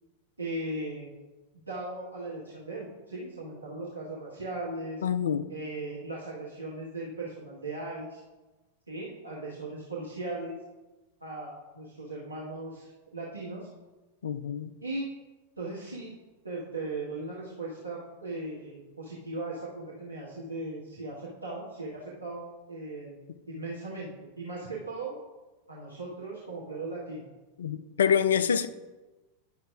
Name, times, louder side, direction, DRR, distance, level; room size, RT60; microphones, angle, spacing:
voice 1, 0.4-1.1 1.7-5.0 5.5-8.2 8.9-10.6 11.2-13.7 14.8-15.1 15.6-16.1 16.4-23.2 23.5-25.1 25.7-27.2, right 2 dB, 80° right, -7 dB, 1.4 m, -38 dB
voice 2, 5.0-5.4 14.2-14.7 27.6-28.7, left 8 dB, 65° left, 11 dB, 0.4 m, -26 dB
10.0 x 6.6 x 2.4 m, 1.1 s
figure-of-eight pair, 90°, 0 cm